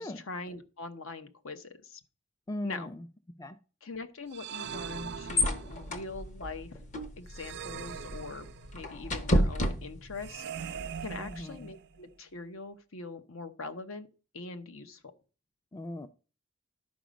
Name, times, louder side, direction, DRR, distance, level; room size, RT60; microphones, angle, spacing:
voice 1, 0.0-2.0 2.6-2.9 3.8-6.8 7.2-8.5 8.7-14.1 14.3-15.0, left 3 dB, 75° left, 0.9 m, -42 dB
voice 2, 2.5-3.1 3.4-3.6 11.2-11.7 15.7-16.1, left 1 dB, 15° left, 0.4 m, -38 dB
sound 1, 4.3-6.0 7.3-8.9 10.2-12.0, right 7 dB, 50° right, 0.4 m, -41 dB
sound 2, 4.6-10.4, equal, 35° left, 0.8 m, -32 dB
11.5 x 5.1 x 5.1 m
head